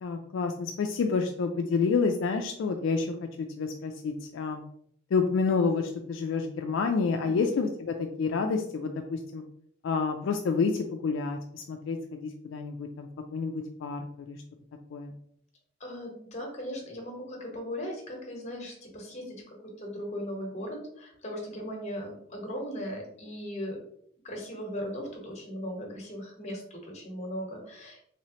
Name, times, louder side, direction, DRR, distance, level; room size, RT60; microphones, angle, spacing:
voice 1, 0.0-4.6 5.1-9.4 9.8-14.4 14.9-15.1, left 4 dB, 70° left, 4 dB, 0.3 m, -29 dB
voice 2, 7.2-7.5 15.8-23.8 24.2-28.1, equal, 35° left, 1 dB, 1.0 m, -38 dB
3.2 x 3.1 x 2.8 m, 0.68 s
head